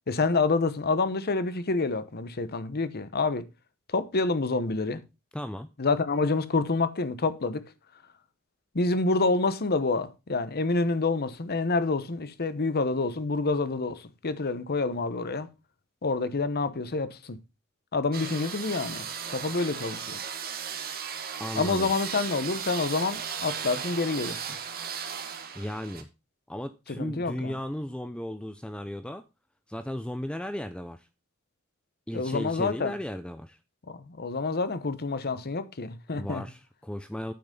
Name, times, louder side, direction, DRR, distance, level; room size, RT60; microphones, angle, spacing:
voice 1, 0.1-3.5 3.9-5.0 5.8-7.6 8.7-15.5 16.0-17.4 17.9-20.2 21.5-24.4 27.0-27.6 32.1-32.9 33.9-36.5, left 3 dB, 45° left, 0.9 m, -28 dB
voice 2, 5.3-5.7 21.4-21.9 25.5-26.1 26.5-29.2 29.7-31.1 32.1-33.6 36.1-37.3, left 1 dB, 5° left, 0.4 m, -35 dB
sound 1, 18.1-26.0, right 7 dB, 45° right, 1.5 m, -36 dB
8.8 x 5.9 x 5.2 m
head